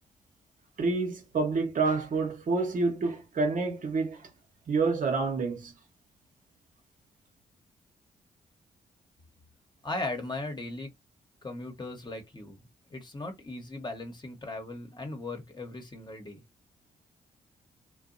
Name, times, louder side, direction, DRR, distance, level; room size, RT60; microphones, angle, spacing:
voice 1, 0.8-4.2 4.7-5.7, right 4 dB, 55° right, 1.0 m, -28 dB
voice 2, 9.8-10.9 11.4-16.4, left 2 dB, 30° left, 1.1 m, -38 dB
2.7 x 2.3 x 2.5 m
supercardioid pair, 55°, 16 cm